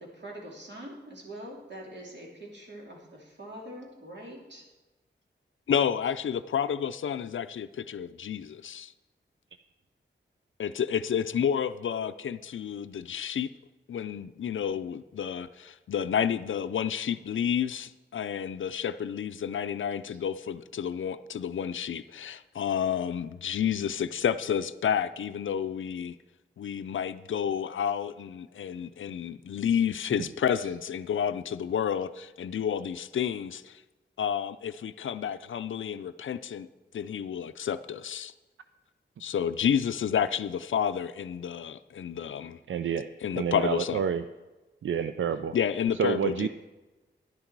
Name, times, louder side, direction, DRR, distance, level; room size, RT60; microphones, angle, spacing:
voice 1, 0.1-4.7, right 1 dB, 65° right, 2.9 m, -44 dB
voice 2, 5.7-8.9 10.6-13.5 13.9-26.2 26.6-33.8 34.2-36.7 36.9-38.3 39.2-42.6 43.2-44.0 45.5-46.5, left 8 dB, 80° left, 0.4 m, -30 dB
voice 3, 42.7-43.0 43.4-44.2 44.8-45.5 46.0-46.5, right 8 dB, 85° right, 0.4 m, -28 dB
11.0 x 10.5 x 4.6 m
wide cardioid pair, 115°, 20 cm